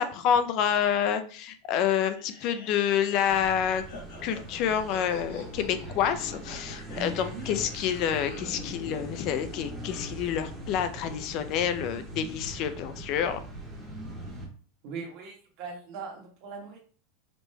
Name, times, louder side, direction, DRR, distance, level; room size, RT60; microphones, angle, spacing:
voice 1, 0.0-3.8 4.2-13.4, left 9 dB, 45° left, 10 dB, 0.4 m, -28 dB
sound 1, 2.0-8.6, left 3 dB, 75° left, 1.3 m, -47 dB
sound 2, 3.3-14.5, equal, 5° right, 1.5 m, -41 dB
voice 2, 6.9-7.5 14.8-16.8, right 4 dB, 50° right, 0 dB, 1.4 m, -40 dB
5.1 x 3.0 x 2.2 m, 0.40 s
supercardioid pair, 135°, 0 cm